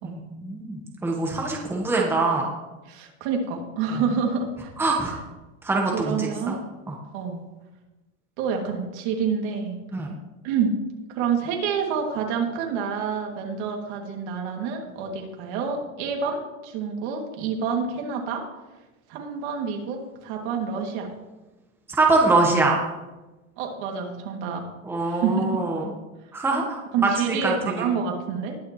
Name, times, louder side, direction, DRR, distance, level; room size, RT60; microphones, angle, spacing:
voice 1, 0.0-2.5 3.9-4.0 4.8-5.1 5.6-6.6 6.9-7.0 9.9-10.1 22.0-22.8 24.8-25.9 26.3-27.9, right 3 dB, 5° right, -1 dB, 1.3 m, -24 dB
voice 2, 2.9-4.7 5.9-6.6 7.1-7.4 8.4-9.8 10.4-10.8 11.2-18.4 19.1-21.1 23.6-24.6 25.0-25.6 26.9-28.6, right 6 dB, 55° right, 1 dB, 2.6 m, -28 dB
20.0 x 6.8 x 3.2 m, 1.1 s
supercardioid pair, 145°, 40 cm